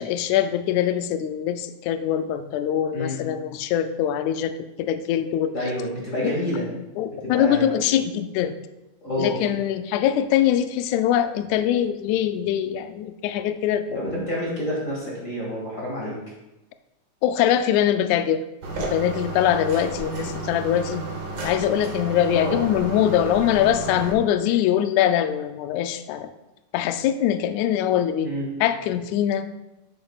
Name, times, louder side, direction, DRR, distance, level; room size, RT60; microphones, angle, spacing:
voice 1, 0.0-4.5 4.8-5.5 6.2-6.3 7.0-8.6 9.2-14.0 17.2-18.4 18.8-21.0 21.4-26.3 26.7-28.3 28.6-29.5, left 10 dB, 80° left, 9 dB, 1.8 m, -23 dB
voice 2, 5.5-6.7 7.2-7.6 9.0-9.3 13.9-16.2 22.3-22.6 28.2-28.5, left 1 dB, 30° left, -6 dB, 2.1 m, -28 dB
sound 1, 18.6-24.1, right 2 dB, 75° right, 0.9 m, -32 dB
10.5 x 7.5 x 2.4 m, 0.95 s
omnidirectional pair, 3.5 m